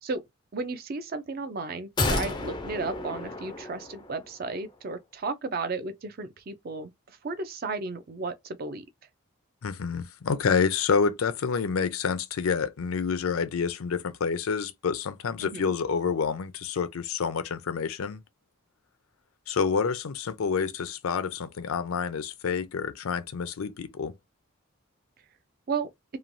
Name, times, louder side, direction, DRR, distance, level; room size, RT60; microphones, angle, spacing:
voice 1, 0.5-8.8 15.4-15.7 25.7-25.9, right 4 dB, 45° right, 0.4 m, -34 dB
sound 1, 2.0-4.3 4.6-4.7, left 2 dB, 20° left, 0.3 m, -31 dB
voice 2, 9.6-18.2 19.5-24.1, left 5 dB, 80° left, 0.5 m, -28 dB
3.0 x 2.3 x 2.5 m
head